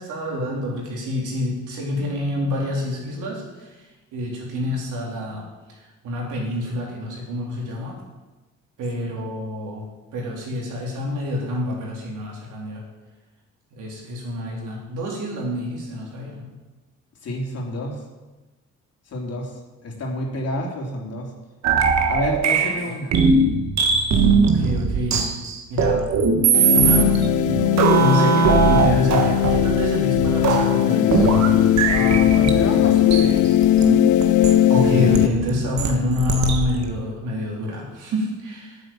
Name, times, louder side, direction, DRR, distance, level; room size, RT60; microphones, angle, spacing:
voice 1, 0.0-3.7 4.1-5.5 6.0-8.0 8.8-9.8 10.1-12.8 13.7-16.5 24.4-25.4 25.7-26.1 26.7-27.1 28.0-31.3 34.7-38.8, left 2 dB, 85° right, -3 dB, 4.0 m, -27 dB
voice 2, 17.2-18.0 19.1-19.5 19.8-21.3 22.1-23.1 31.9-33.5, left 1 dB, 55° left, 0 dB, 3.0 m, -29 dB
sound 1, 21.6-36.9, right 5 dB, 65° right, 1.5 m, -20 dB
sound 2, 26.5-35.3, left 12 dB, 80° left, 0.6 m, -18 dB
9.1 x 8.6 x 7.4 m, 1.2 s
cardioid pair, 90°, 30 cm